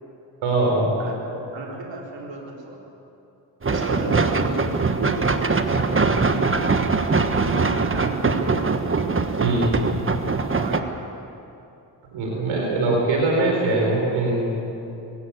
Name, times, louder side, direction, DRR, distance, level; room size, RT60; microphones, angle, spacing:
voice 1, 0.4-0.9 9.4-9.7 12.1-14.6, right 2 dB, 85° right, -1 dB, 4.2 m, -22 dB
voice 2, 1.0-2.8 3.7-9.7 10.1-10.2 10.5-11.1, right 3 dB, 70° right, -2 dB, 4.6 m, -35 dB
sound 1, 3.6-10.8, right 4 dB, 25° right, 1.5 m, -22 dB
22.0 x 16.5 x 8.5 m, 2.8 s
cardioid pair, 65°, 45 cm